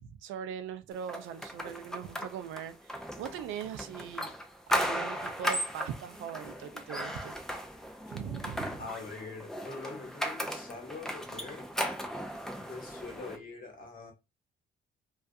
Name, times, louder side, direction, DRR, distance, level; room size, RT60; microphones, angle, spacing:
voice 1, 0.0-4.3 4.7-7.4 8.1-8.8, right 8 dB, 85° right, 0.4 m, -40 dB
sound 1, 1.1-13.4, equal, ahead, 0.4 m, -36 dB
voice 2, 8.8-11.7 12.6-14.1, left 4 dB, 45° left, 1.1 m, -43 dB
2.3 x 2.3 x 2.6 m
cardioid pair, 90°, 20 cm